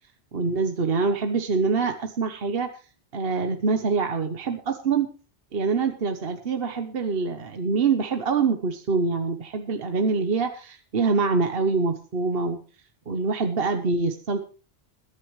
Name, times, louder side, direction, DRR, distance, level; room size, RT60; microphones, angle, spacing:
voice 1, 0.3-2.7 3.1-5.1 5.5-12.6 13.1-14.4, right 4 dB, 60° right, 7 dB, 1.3 m, -25 dB
21.0 x 10.5 x 3.2 m, 0.36 s
omnidirectional pair, 1.1 m